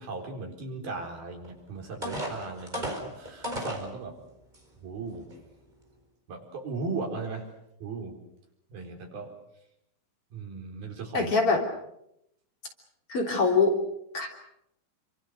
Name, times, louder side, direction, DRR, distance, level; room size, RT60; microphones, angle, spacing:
voice 1, 0.0-4.2 4.8-5.4 6.3-7.5 7.8-8.2 8.7-9.4 10.3-11.4, right 4 dB, 85° right, 2 dB, 6.2 m, -37 dB
sound 1, 1.4-1.5 2.0-3.9 4.5-4.6 5.1-5.4, equal, 10° right, 4.6 m, -34 dB
voice 2, 11.1-11.6 13.1-13.8 14.1-14.3, left 4 dB, 40° left, 2 dB, 4.1 m, -23 dB
28.5 x 25.5 x 6.6 m, 0.80 s
omnidirectional pair, 4.2 m